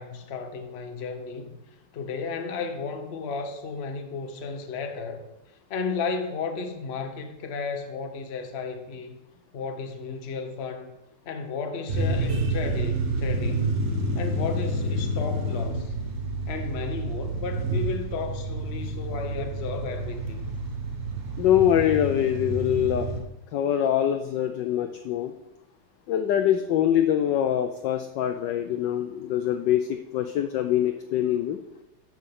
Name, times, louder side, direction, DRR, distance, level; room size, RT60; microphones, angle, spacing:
voice 1, 0.0-1.6 1.9-5.2 5.7-9.2 9.5-10.9 11.2-13.7 14.1-15.9 16.5-20.5, left 4 dB, 50° left, 0.7 m, -33 dB
sound 1, 11.9-23.2, right 1 dB, 45° right, 1.3 m, -29 dB
voice 2, 21.4-23.1 23.5-25.3 26.1-31.6, left 10 dB, 75° left, 1.0 m, -24 dB
12.0 x 6.4 x 3.7 m
omnidirectional pair, 2.4 m